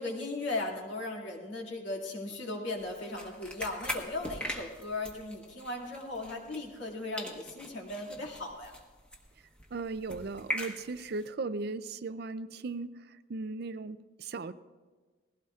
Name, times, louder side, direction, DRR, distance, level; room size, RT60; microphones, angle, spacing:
voice 1, 0.0-8.7, left 2 dB, 65° left, -1 dB, 2.3 m, -37 dB
sound 1, 2.8-6.9 7.2-11.3, equal, 5° left, 1.1 m, -42 dB
voice 2, 9.7-12.9 13.3-14.5, right 3 dB, 50° right, 14 dB, 0.4 m, -37 dB
19.5 x 16.0 x 2.4 m, 1.4 s
head